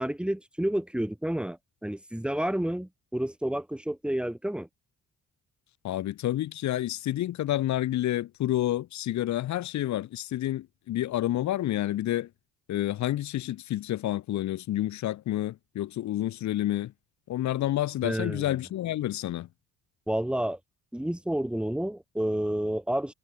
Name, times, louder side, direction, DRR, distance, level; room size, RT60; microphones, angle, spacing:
voice 1, 0.0-4.7 18.0-18.5 20.1-20.6 20.9-23.1, right 1 dB, 5° right, 1.6 m, -30 dB
voice 2, 5.8-12.3 12.7-16.9 17.3-19.5, left 13 dB, 65° left, 0.9 m, -29 dB
cardioid pair, 90°, 30 cm